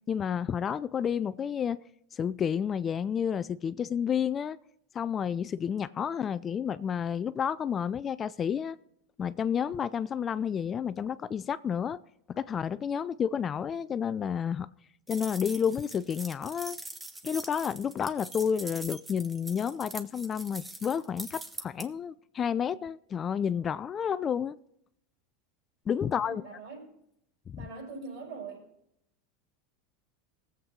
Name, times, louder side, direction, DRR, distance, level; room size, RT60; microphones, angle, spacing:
voice 1, 0.1-1.8 2.1-4.6 4.9-8.8 9.2-12.0 12.3-14.7 15.1-16.8 17.2-24.6 25.9-26.4 27.5-27.7, left 7 dB, 30° left, 0.4 m, -30 dB
sound 1, 15.1-21.9, right 2 dB, 10° right, 1.0 m, -43 dB
voice 2, 26.2-26.9 27.6-28.6, right 4 dB, 60° right, 5.7 m, -42 dB
18.0 x 8.0 x 3.8 m
supercardioid pair, 115°, 0 cm